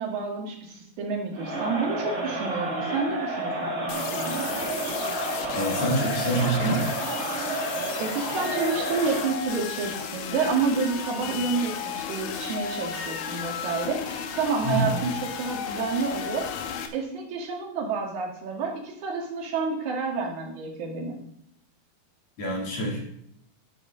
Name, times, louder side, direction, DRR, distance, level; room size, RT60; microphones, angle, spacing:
voice 1, 0.0-4.5 8.0-16.5 16.9-21.2, right 4 dB, 55° right, -1 dB, 3.0 m, -29 dB
Crowd, 1.3-9.4, right 1 dB, 85° right, 0.6 m, -30 dB
sound 1, 3.9-16.9, left 7 dB, 75° left, 2.4 m, -34 dB
voice 2, 5.5-6.9 11.3-11.4 14.6-14.9 22.4-23.0, right 1 dB, 45° left, -3 dB, 3.5 m, -26 dB
11.5 x 7.8 x 3.8 m, 0.74 s
omnidirectional pair, 4.5 m